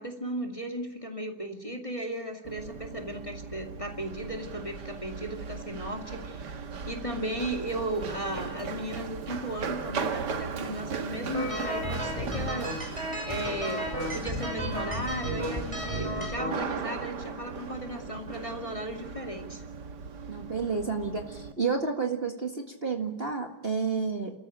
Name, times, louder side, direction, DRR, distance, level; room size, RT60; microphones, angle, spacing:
voice 1, 0.0-19.6, equal, 20° left, 2 dB, 2.3 m, -36 dB
Run, 2.4-21.5, right 6 dB, 70° right, 1.9 m, -38 dB
sound 1, 11.3-16.5, equal, 15° right, 5.8 m, -33 dB
voice 2, 20.3-24.4, right 5 dB, 35° right, 2 dB, 2.0 m, -30 dB
30.0 x 14.0 x 8.8 m, 0.92 s
omnidirectional pair, 1.9 m